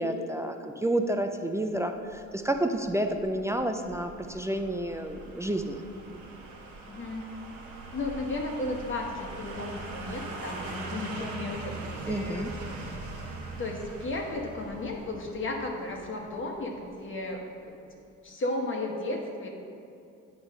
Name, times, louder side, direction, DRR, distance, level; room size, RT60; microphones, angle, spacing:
voice 1, 0.0-5.8 12.1-12.5, right 1 dB, 10° right, 6 dB, 0.3 m, -30 dB
sound 1, 2.1-17.0 17.3-17.4, right 3 dB, 80° right, 1.2 m, -42 dB
voice 2, 6.9-7.3 7.9-11.7 12.1-12.5 13.6-17.8 18.2-19.5, left 2 dB, 40° left, 0 dB, 1.1 m, -34 dB
8.3 x 3.1 x 6.3 m, 2.6 s
cardioid pair, 90°, 30 cm